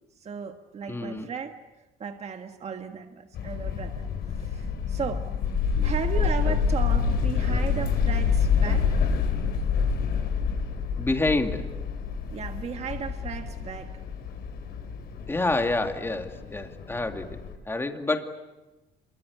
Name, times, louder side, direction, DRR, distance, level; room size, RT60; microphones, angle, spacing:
voice 1, 0.2-5.2 5.8-9.0 12.3-13.9, right 6 dB, 40° right, 6 dB, 1.7 m, -35 dB
voice 2, 0.9-1.3 5.7-6.0 6.4-6.5 11.0-11.7 15.3-18.4, left 2 dB, 15° left, 5 dB, 2.4 m, -28 dB
sound 1, 3.3-17.5, left 6 dB, 70° left, 4.5 m, -27 dB
27.0 x 23.5 x 8.4 m, 1.1 s
cardioid pair, 110°, 17 cm